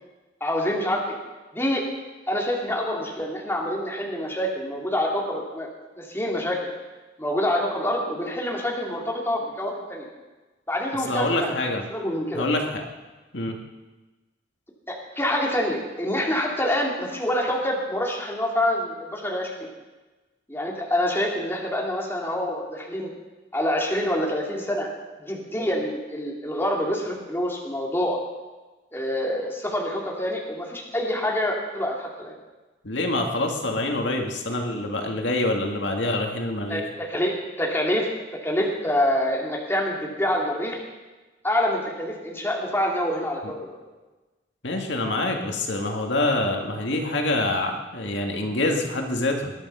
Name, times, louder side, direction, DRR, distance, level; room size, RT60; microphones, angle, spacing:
voice 1, 0.4-1.2 1.5-1.8 2.3-5.7 6.0-6.6 7.2-10.1 10.7-11.5 11.9-12.5 14.9-19.5 20.5-23.1 23.5-24.9 25.2-28.2 28.9-32.3 36.7-38.1 38.4-40.8 41.4-43.8, left 1 dB, 15° left, -2 dB, 2.9 m, -26 dB
voice 2, 11.1-11.9 12.3-12.8 13.3-13.6 32.8-36.8 43.4-43.5 44.6-49.5, left 2 dB, 80° left, 2 dB, 2.0 m, -26 dB
21.0 x 10.5 x 5.6 m, 1.2 s
head